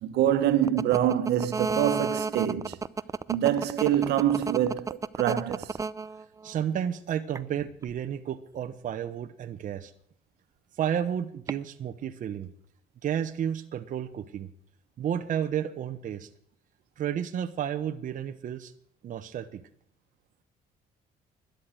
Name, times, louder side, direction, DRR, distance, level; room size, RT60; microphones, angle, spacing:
voice 1, 0.0-2.8 3.3-5.7, right 11 dB, 80° right, 1.5 m, -25 dB
sound 1, 0.6-6.6 7.4-7.9 11.5-11.6, right 4 dB, 20° right, 0.5 m, -31 dB
voice 2, 6.4-9.9 10.8-12.5 13.0-14.5 15.0-16.3 17.0-18.7 19.0-19.6, right 9 dB, 50° right, 1.0 m, -32 dB
13.0 x 10.5 x 7.7 m
cardioid pair, 110°, 17 cm